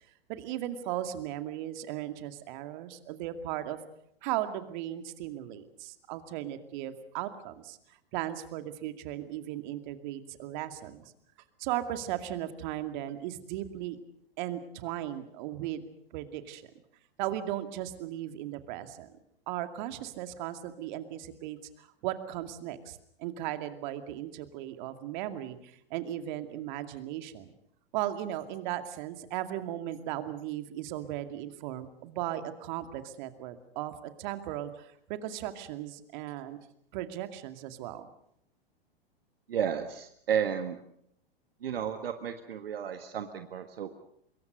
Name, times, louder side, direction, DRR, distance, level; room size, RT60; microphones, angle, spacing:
voice 1, 0.3-3.8 4.2-11.1 11.6-14.0 14.4-15.8 16.1-16.6 17.2-19.1 19.5-27.5 27.9-36.6 36.9-38.1, right 12 dB, 50° right, 9 dB, 2.4 m, -37 dB
voice 2, 39.5-40.8 41.6-43.9, right 8 dB, 70° right, 8 dB, 1.7 m, -32 dB
25.0 x 22.5 x 6.6 m, 0.71 s
figure-of-eight pair, 100°, 30 cm